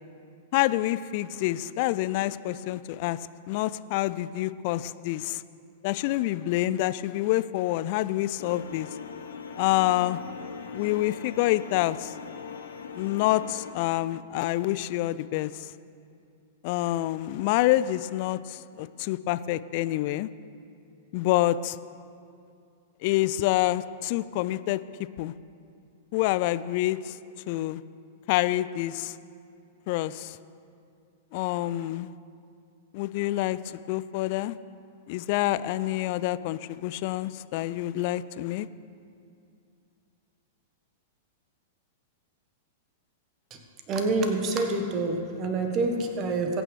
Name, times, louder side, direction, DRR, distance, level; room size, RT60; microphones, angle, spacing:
voice 1, 0.5-3.2 3.5-5.4 5.8-8.9 9.6-10.2 10.7-12.1 13.0-15.7 16.6-20.3 21.1-21.8 23.0-24.8 25.2-25.3 26.1-27.2 27.5-27.8 28.3-29.2 29.9-30.4 31.3-32.1 32.9-33.6 33.9-34.6 35.1-38.7, left 16 dB, 45° left, 16 dB, 0.3 m, -27 dB
sound 1, 8.4-13.7, left 6 dB, 65° left, 1.0 m, -41 dB
voice 2, 43.9-46.6, right 3 dB, 30° right, 4 dB, 1.5 m, -27 dB
21.0 x 8.9 x 3.4 m, 2.5 s
figure-of-eight pair, 100°, 0 cm